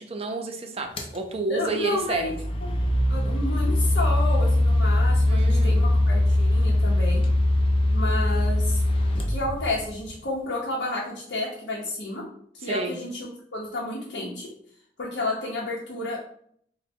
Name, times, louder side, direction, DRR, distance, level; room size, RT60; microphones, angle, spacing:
voice 1, 0.0-2.3 5.3-5.8 12.6-13.0, right 3 dB, 35° right, 5 dB, 0.5 m, -30 dB
sound 1, 1.0-1.2 2.1-10.1, left 1 dB, 30° left, 0.5 m, -22 dB
voice 2, 1.5-2.3 2.6-2.7 3.1-7.3 7.9-8.8 9.2-12.2 12.5-14.5 15.0-16.2, left 2 dB, 70° left, -4 dB, 0.8 m, -31 dB
3.3 x 2.1 x 4.2 m, 0.63 s
head